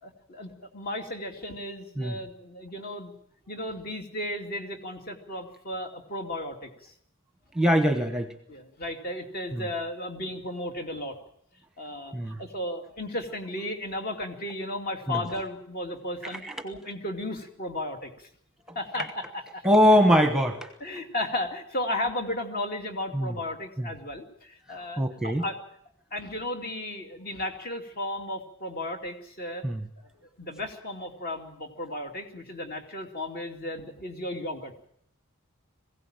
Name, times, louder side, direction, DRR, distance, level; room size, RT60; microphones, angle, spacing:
voice 1, 0.0-3.1 3.5-6.9 8.5-11.2 11.8-18.3 18.7-19.6 20.8-25.6 26.1-29.6 30.4-34.7, left 1 dB, 45° left, 4 dB, 2.6 m, -34 dB
voice 2, 7.5-8.3 9.5-9.7 12.1-12.4 15.1-15.2 16.3-16.6 18.7-18.8 19.6-20.7 23.1-23.4 23.8-23.9 25.0-25.4 29.6-29.8, equal, 5° right, 8 dB, 1.1 m, -22 dB
21.5 x 16.0 x 8.9 m, 0.70 s
head